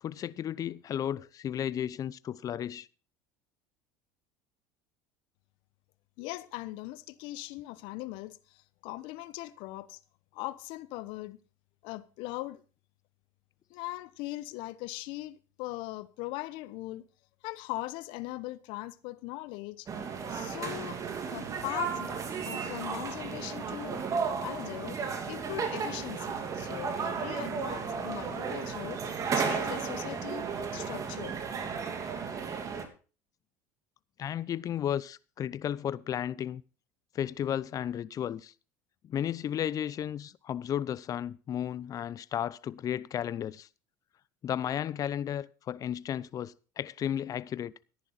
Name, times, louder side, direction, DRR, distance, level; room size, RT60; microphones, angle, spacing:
voice 1, 0.0-2.9 34.2-36.6 37.1-38.5 39.0-43.7 44.4-47.7, left 10 dB, 40° left, 0.7 m, -34 dB
voice 2, 6.2-10.0 10.3-11.4 11.8-12.6 13.7-17.1 17.4-19.9 20.3-21.0 21.3-22.2 22.4-24.0 24.4-25.0 25.3-30.5 30.7-31.4, left 18 dB, 65° left, 1.0 m, -40 dB
sound 1, 19.9-32.8, right 6 dB, 40° right, 3.0 m, -34 dB
14.0 x 10.5 x 4.1 m
supercardioid pair, 90°, 9 cm